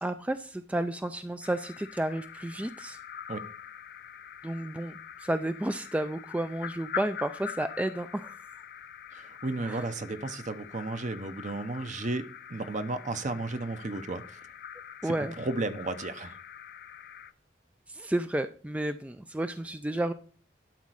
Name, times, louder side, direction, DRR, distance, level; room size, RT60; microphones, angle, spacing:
voice 1, 0.0-3.0 4.4-8.4 9.6-9.9 15.0-15.3 17.9-20.1, right 1 dB, 10° right, 0.3 m, -32 dB
sound 1, 1.4-17.3, left 9 dB, 60° left, 0.5 m, -44 dB
voice 2, 9.1-14.2 15.0-16.4, right 2 dB, 45° right, 0.9 m, -34 dB
12.0 x 4.2 x 6.3 m
head